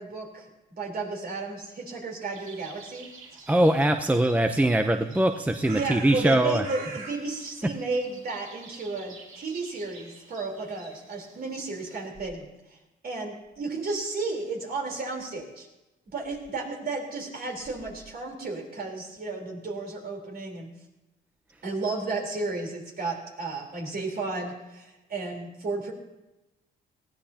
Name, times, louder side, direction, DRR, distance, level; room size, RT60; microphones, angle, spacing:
voice 1, 0.0-3.1 5.7-15.7 16.1-20.7 21.6-25.9, right 3 dB, 50° right, 1 dB, 3.9 m, -33 dB
Dawn Chorus Scotland, 2.3-12.1, right 4 dB, 85° right, 2.3 m, -47 dB
voice 2, 3.5-6.6, right 1 dB, 5° right, 6 dB, 0.7 m, -22 dB
19.0 x 15.5 x 2.9 m, 1.0 s
cardioid pair, 90°, 20 cm